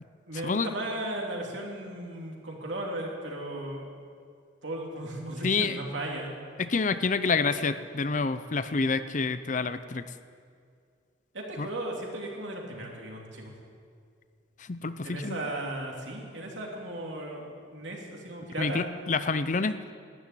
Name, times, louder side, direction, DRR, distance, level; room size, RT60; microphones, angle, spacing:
voice 1, 0.3-3.9 4.6-6.3 11.3-13.5 15.0-18.9, right 1 dB, 75° right, -1 dB, 2.9 m, -36 dB
voice 2, 5.4-5.8 6.6-10.0 11.6-11.7 14.6-15.4 18.6-19.8, left 4 dB, 40° left, 12 dB, 0.5 m, -28 dB
12.5 x 10.5 x 9.8 m, 2.2 s
head